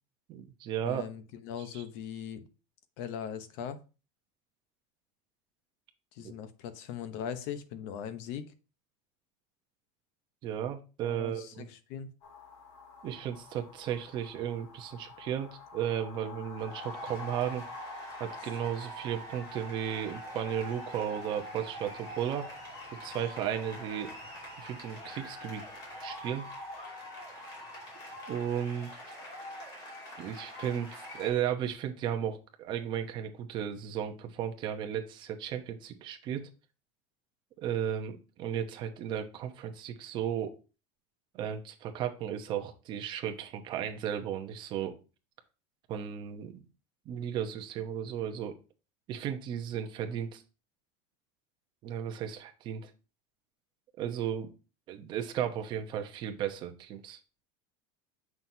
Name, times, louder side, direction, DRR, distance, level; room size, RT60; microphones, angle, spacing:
voice 1, 0.3-1.0 1.6-1.8 6.2-6.3 10.4-11.7 13.0-17.6 18.2-22.5 23.0-24.1 24.6-25.6 26.0-26.5 28.3-29.1 30.2-36.4 37.6-40.5 41.3-45.0 45.9-46.6 47.0-48.6 49.1-50.4 51.8-52.9 54.0-54.5 54.9-57.2, right 9 dB, 30° right, 0.9 m, -35 dB
voice 2, 0.8-2.5 3.0-3.8 6.1-8.4 11.0-12.1 18.4-18.5, left 8 dB, 50° left, 0.9 m, -40 dB
sound 1, 12.2-26.8, left 4 dB, 80° left, 2.0 m, -52 dB
sound 2, 16.4-31.3, equal, 30° left, 2.8 m, -44 dB
7.4 x 5.9 x 2.8 m
supercardioid pair, 170°, 15 cm